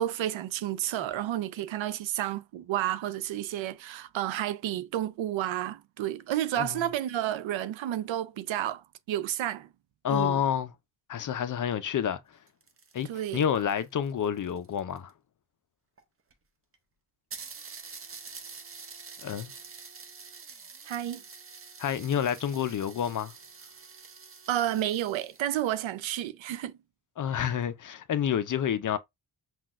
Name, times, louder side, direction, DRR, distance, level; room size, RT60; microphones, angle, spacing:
voice 1, 0.0-9.7 10.1-10.4 13.1-13.4 20.9-21.2 24.5-26.8 27.3-27.5, right 12 dB, 85° right, 0.5 m, -31 dB
voice 2, 10.0-10.7 11.1-12.2 12.9-15.1 19.2-19.5 21.8-23.3 27.2-29.0, left 9 dB, 45° left, 0.5 m, -29 dB
sound 1, 12.3-15.1 16.0-16.1 16.3-16.4 16.7-16.8 17.3-25.5, right 5 dB, 30° right, 0.6 m, -47 dB
5.8 x 2.4 x 2.4 m
wide cardioid pair, 125°, 46 cm